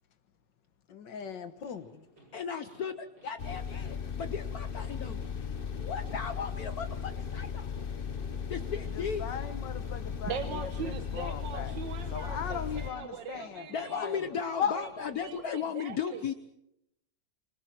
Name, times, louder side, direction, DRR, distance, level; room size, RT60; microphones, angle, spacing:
voice 1, 0.9-2.1 8.9-11.7 12.1-13.7 13.9-14.2 14.6-14.7, left 7 dB, 80° left, 10 dB, 1.8 m, -37 dB
sound 1, 1.1-15.4, right 1 dB, 70° right, 6.9 m, -55 dB
voice 2, 2.3-5.2 5.8-7.7 8.5-9.4 13.7-16.3, left 6 dB, 60° left, 8 dB, 1.4 m, -36 dB
sound 2, 3.4-12.9, left 7 dB, 40° left, 0.9 m, -37 dB
voice 3, 10.3-14.2 14.8-14.9 15.2-16.3, right 7 dB, 85° right, 8 dB, 1.8 m, -41 dB
26.0 x 25.0 x 4.5 m, 0.79 s
omnidirectional pair, 2.0 m